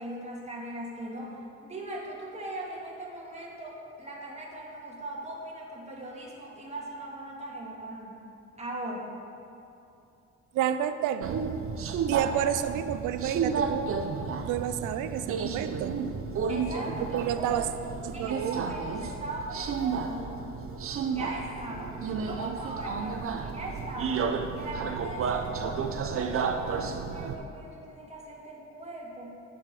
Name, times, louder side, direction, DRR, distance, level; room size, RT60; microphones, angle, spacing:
voice 1, 0.0-8.2 8.6-9.1 16.5-17.6 18.1-20.4 21.1-24.2 24.6-29.4, right 1 dB, 20° right, -3 dB, 2.1 m, -39 dB
voice 2, 10.5-11.4 12.1-14.0 14.4-16.0 17.1-17.7 18.0-18.8, right 10 dB, 90° right, 10 dB, 0.5 m, -30 dB
Subway metro underground, 11.2-27.4, right 5 dB, 45° right, 0.7 m, -32 dB
9.6 x 5.1 x 5.9 m, 2.7 s
cardioid pair, 90°, 30 cm